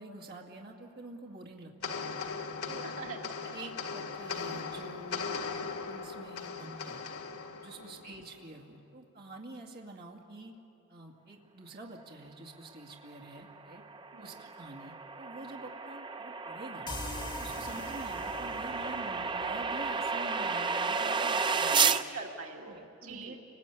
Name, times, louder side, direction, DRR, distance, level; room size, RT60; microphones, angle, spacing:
voice 1, 0.0-2.3 2.6-2.9 3.2-7.0 7.6-10.6 10.9-13.8 14.2-16.9 17.4-21.9 22.7-23.4, right 2 dB, 45° right, 0 dB, 2.3 m, -47 dB
sound 1, 1.8-8.5, left 5 dB, 80° left, 1.7 m, -39 dB
voice 2, 2.6-3.2 3.5-3.6 7.8-8.1 14.1-14.5 17.6-17.8 21.7-23.4, right 5 dB, 70° right, 1 dB, 2.3 m, -43 dB
sound 2, 13.4-22.0, right 5 dB, 20° right, 0.6 m, -32 dB
sound 3, 16.9-20.4, left 2 dB, 20° left, 2.0 m, -43 dB
30.0 x 20.5 x 8.4 m, 2.8 s
head